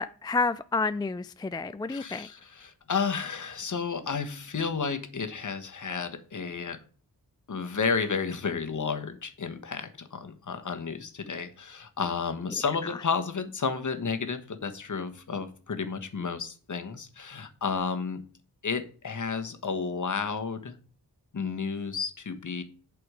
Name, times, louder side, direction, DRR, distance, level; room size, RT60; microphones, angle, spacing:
voice 1, 0.0-2.3, left 3 dB, 10° left, 0.3 m, -29 dB
voice 2, 1.9-6.8 7.5-18.2 18.6-20.8 21.3-22.6, left 5 dB, 50° left, 1.3 m, -32 dB
8.1 x 6.1 x 5.0 m
cardioid pair, 65°, 39 cm